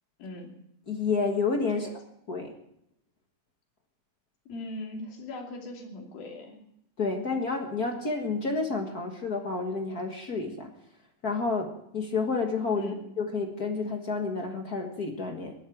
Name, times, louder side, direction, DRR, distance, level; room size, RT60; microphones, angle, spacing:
voice 1, 0.2-0.6 1.7-1.9 4.5-6.6 12.8-13.0, left 2 dB, 85° left, 1 dB, 4.6 m, -40 dB
voice 2, 0.9-1.9 2.3-2.5 7.0-10.7 11.2-15.5, left 4 dB, 45° left, 3 dB, 1.2 m, -30 dB
19.5 x 12.0 x 6.1 m, 0.77 s
omnidirectional pair, 4.1 m